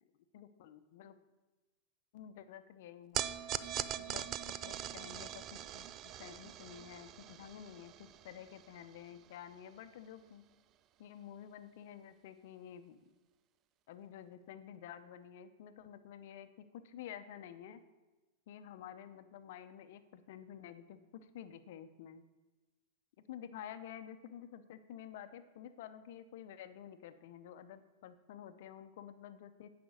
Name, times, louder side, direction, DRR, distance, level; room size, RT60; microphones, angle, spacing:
voice 1, 0.3-1.2 2.1-3.3 4.0-5.9 6.2-10.4 11.0-13.0 13.9-17.8 18.5-22.2 23.3-29.7, left 9 dB, 65° left, 11 dB, 0.7 m, -50 dB
sound 1, 3.1-9.5, right 11 dB, 40° right, 0.4 m, -42 dB
9.2 x 5.1 x 6.3 m, 1.2 s
hypercardioid pair, 110°, 0 cm